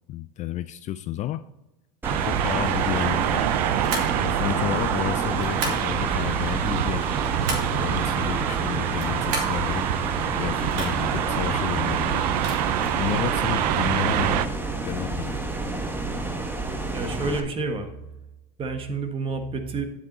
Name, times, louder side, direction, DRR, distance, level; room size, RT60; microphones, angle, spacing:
voice 1, 0.1-1.4 2.3-3.5 4.2-7.1 7.7-9.8 10.3-12.3 13.0-14.5 14.8-15.4, left 13 dB, 35° left, 13 dB, 0.4 m, -31 dB
sound 1, 2.0-17.4, right 2 dB, 10° right, 1.1 m, -30 dB
sound 2, 2.0-14.5, right 11 dB, 80° right, 0.7 m, -26 dB
sound 3, 3.8-4.2 5.4-5.9 6.9-7.8 8.9-9.6 10.7-11.2 12.3-13.0, right 3 dB, 55° right, 2.8 m, -33 dB
voice 2, 16.9-17.9 18.6-19.8, right 3 dB, 25° right, 7 dB, 1.5 m, -29 dB
9.5 x 7.3 x 4.0 m, 0.97 s
supercardioid pair, 115°, 21 cm